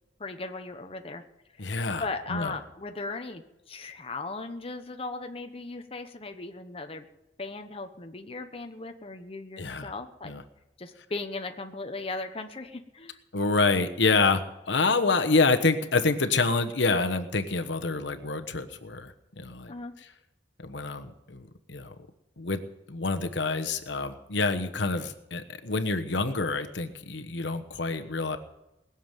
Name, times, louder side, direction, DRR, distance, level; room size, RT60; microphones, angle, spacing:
voice 1, 0.2-1.2 1.5-1.6 2.0-7.1 7.4-10.3 10.8-13.2 19.7-19.9, left 3 dB, 30° left, 6 dB, 1.0 m, -37 dB
voice 2, 1.6-2.0 2.3-2.5 9.6-9.9 10.2-10.4 13.3-14.4 14.7-19.7 20.6-21.9 22.4-22.6 22.9-28.4, left 3 dB, 75° left, 7 dB, 1.2 m, -27 dB
20.0 x 7.4 x 9.0 m, 0.93 s
head